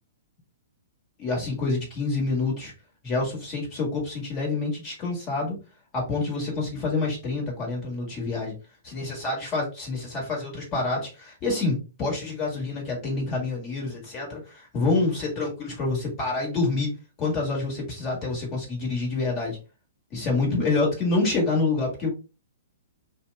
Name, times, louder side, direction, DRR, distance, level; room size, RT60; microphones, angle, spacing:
voice 1, 1.2-2.7 3.0-5.5 5.9-8.5 8.8-19.6 20.1-22.1, left 3 dB, 30° left, -2 dB, 1.6 m, -27 dB
2.8 x 2.3 x 3.3 m, 0.31 s
hypercardioid pair, 120°, 0 cm